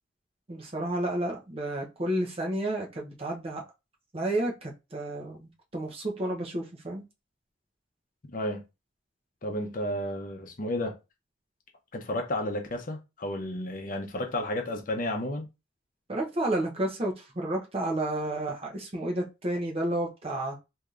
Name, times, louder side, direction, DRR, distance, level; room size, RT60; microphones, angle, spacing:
voice 1, 0.5-3.6 4.1-7.0 16.1-20.6, right 1 dB, 30° right, 0.7 m, -31 dB
voice 2, 8.3-8.6 9.4-11.0 11.9-15.5, left 1 dB, 45° left, 0.7 m, -32 dB
3.4 x 2.7 x 2.4 m
head